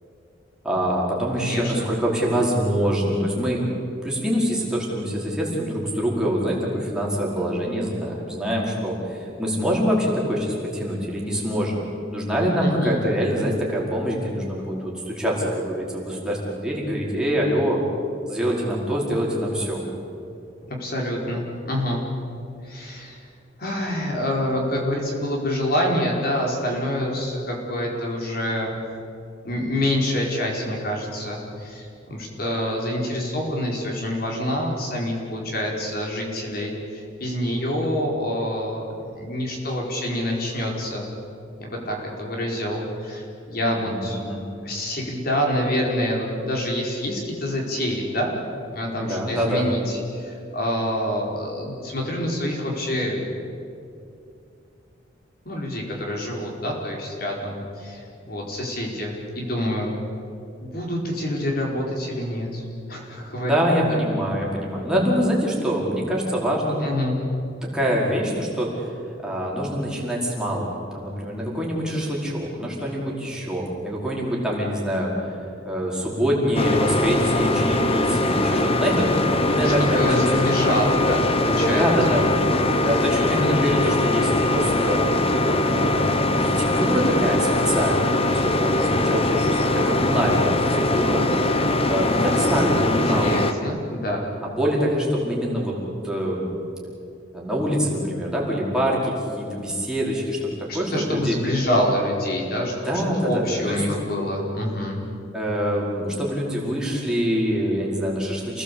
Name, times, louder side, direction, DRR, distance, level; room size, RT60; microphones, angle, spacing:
voice 1, 0.6-3.6 4.0-11.8 12.1-17.8 18.3-19.8 43.6-44.4 49.0-49.7 63.4-66.8 67.6-68.9 69.2-75.4 75.6-80.4 81.7-82.3 82.8-91.3 91.9-93.3 94.4-95.8 96.0-96.5 97.3-101.4 102.8-103.8 105.3-108.6, equal, 5° right, -4 dB, 5.0 m, -25 dB
voice 2, 1.4-1.9 12.6-13.0 20.7-22.0 22.6-23.2 23.6-28.8 29.4-41.0 41.6-44.2 44.6-48.3 48.7-53.2 55.4-58.0 58.2-60.0 60.6-62.6 62.9-63.6 63.9-64.0 66.8-67.2 79.6-82.2 93.1-94.2 100.7-105.0, left 1 dB, 55° left, -1 dB, 4.9 m, -26 dB
sound 1, 76.5-93.5, left 2 dB, 30° left, 1.2 m, -21 dB
29.0 x 18.5 x 8.6 m, 2.6 s
head